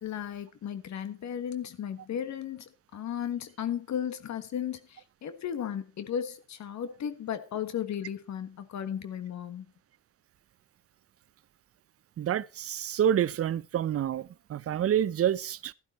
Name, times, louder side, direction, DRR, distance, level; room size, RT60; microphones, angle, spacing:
voice 1, 0.0-9.6, left 9 dB, 65° left, 1.5 m, -35 dB
voice 2, 12.2-15.7, right 10 dB, 50° right, 0.7 m, -28 dB
12.0 x 11.5 x 4.2 m
cardioid pair, 90°, 30 cm